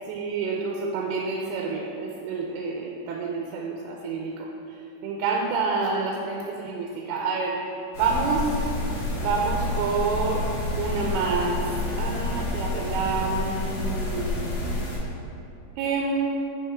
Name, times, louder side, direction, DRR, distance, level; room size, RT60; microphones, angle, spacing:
voice 1, 0.1-4.5 5.0-7.6 8.0-8.6 9.2-11.7 12.0-14.8 15.8-16.4, right 4 dB, 90° right, -1 dB, 2.8 m, -28 dB
sound 1, 7.9-15.0, left 2 dB, 65° left, 2.9 m, -29 dB
8.8 x 4.9 x 3.4 m, 2.6 s
omnidirectional pair, 4.9 m